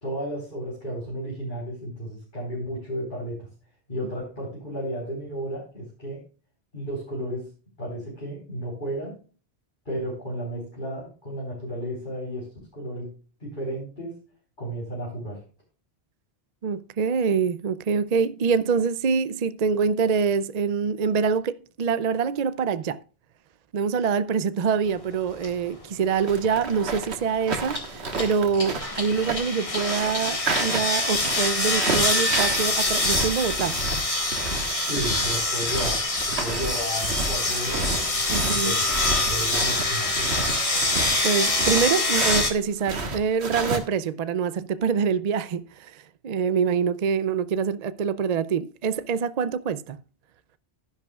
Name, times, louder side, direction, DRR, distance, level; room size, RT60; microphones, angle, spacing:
voice 1, 0.0-3.4 3.9-6.2 6.7-7.5 7.8-9.2 9.9-12.5 12.7-13.1 13.4-14.1 14.6-15.4 34.7-36.0 36.4-37.9 38.3-38.8 39.2-40.5, right 1 dB, 50° left, 4.0 m, -33 dB
voice 2, 16.6-23.0 23.7-33.8 38.3-38.8 41.2-50.0, right 6 dB, 50° right, 0.5 m, -25 dB
sound 1, 25.4-25.5 26.1-26.5 27.7-42.5, left 2 dB, 30° left, 1.7 m, -25 dB
sound 2, 26.3-42.5 42.8-43.8, right 3 dB, 80° right, 1.7 m, -31 dB
11.5 x 10.5 x 2.3 m
omnidirectional pair, 1.1 m